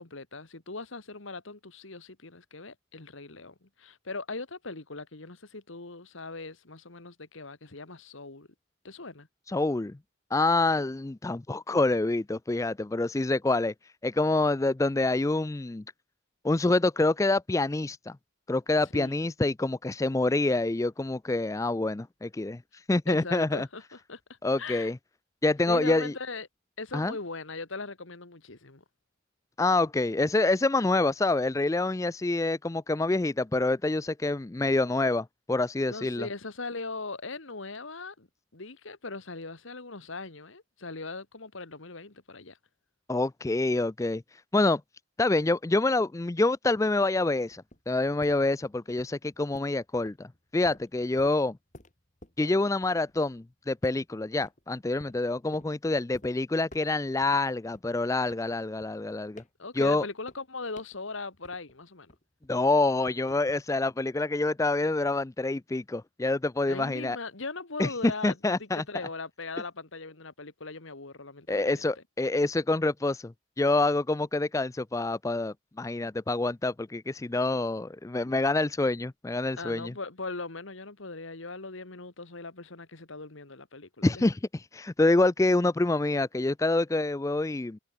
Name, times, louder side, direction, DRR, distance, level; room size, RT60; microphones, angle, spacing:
voice 1, 0.0-8.5 8.8-9.3 18.9-19.2 23.1-23.8 24.1-24.2 24.6-24.9 25.7-26.5 26.8-28.8 35.9-38.3 38.5-42.6 59.6-62.1 66.7-71.9 79.6-84.3, left 3 dB, 70° left, 1.9 m, -39 dB
voice 2, 9.5-9.9 10.3-13.7 14.0-15.8 16.4-18.2 18.5-22.6 22.9-23.7 24.4-25.0 25.4-26.1 26.9-27.1 29.6-36.3 43.1-44.2 44.5-44.8 45.2-50.3 50.5-51.6 52.4-59.4 59.7-60.1 62.5-67.2 67.8-67.9 68.2-68.8 71.5-73.3 73.6-79.9 84.0-87.8, left 2 dB, 15° left, 0.3 m, -26 dB
sound 1, 47.2-53.4 53.8-54.6 55.0-55.7 56.1-56.3 56.7-57.4 57.7-61.8 62.1-63.6, left 1 dB, 35° left, 3.9 m, -53 dB
head